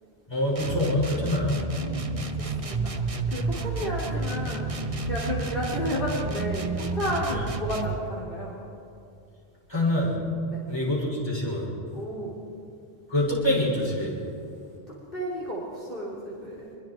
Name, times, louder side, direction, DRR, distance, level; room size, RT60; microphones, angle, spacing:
voice 1, 0.3-1.6 7.4-7.5 9.7-10.1 10.7-11.7 13.1-14.1, left 1 dB, 25° left, -5 dB, 6.2 m, -25 dB
sound 1, 0.5-8.1, right 3 dB, 35° right, 1.1 m, -30 dB
voice 2, 1.7-4.7 5.0-8.6 10.5-10.6 11.9-12.4 14.9-16.7, equal, 55° left, -6 dB, 3.8 m, -33 dB
27.0 x 22.0 x 4.6 m, 2.5 s
omnidirectional pair, 1.1 m